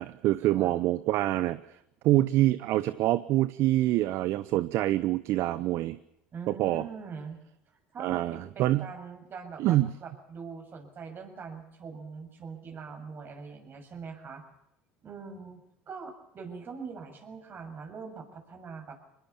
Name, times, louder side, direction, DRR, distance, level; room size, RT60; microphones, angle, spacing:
voice 1, 0.0-1.6 2.0-6.0 6.5-6.9 8.0-8.9 9.6-9.9, right 15 dB, 60° right, 15 dB, 0.9 m, -26 dB
voice 2, 6.3-7.4 7.7-14.4 15.0-15.6 15.9-19.0, right 5 dB, 45° right, 5 dB, 7.1 m, -43 dB
24.0 x 20.5 x 7.1 m, 0.81 s
hypercardioid pair, 80°, 5 cm